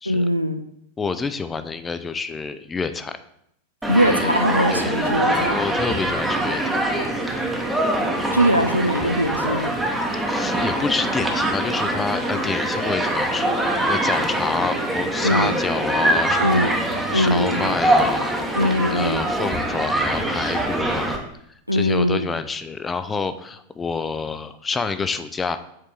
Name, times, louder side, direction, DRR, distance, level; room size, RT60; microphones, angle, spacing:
voice 1, 0.1-0.6 3.9-5.6 8.3-9.7 15.2-15.6 16.4-16.8 17.1-17.8 18.6-19.2 21.7-22.3, equal, 90° right, 9 dB, 0.4 m, -21 dB
voice 2, 1.0-3.2 4.1-4.3 4.7-4.9 5.5-6.8 10.3-18.6 18.9-21.2 21.7-25.6, left 4 dB, 15° left, 11 dB, 0.4 m, -28 dB
Human group actions, 3.8-21.2, right 1 dB, 5° right, 0.9 m, -23 dB
7.4 x 4.4 x 3.3 m, 0.74 s
figure-of-eight pair, 90°, 0 cm